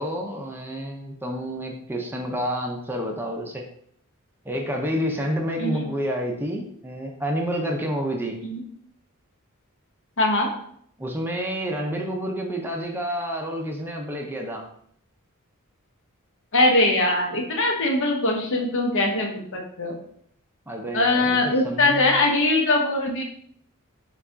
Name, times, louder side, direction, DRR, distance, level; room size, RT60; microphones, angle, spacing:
voice 1, 0.0-3.6 4.4-8.4 11.0-14.6 20.7-22.2, equal, 10° right, 1 dB, 0.5 m, -29 dB
voice 2, 10.2-10.5 16.5-19.9 20.9-23.2, left 2 dB, 60° left, 1 dB, 0.8 m, -21 dB
4.6 x 2.4 x 3.8 m, 0.66 s
head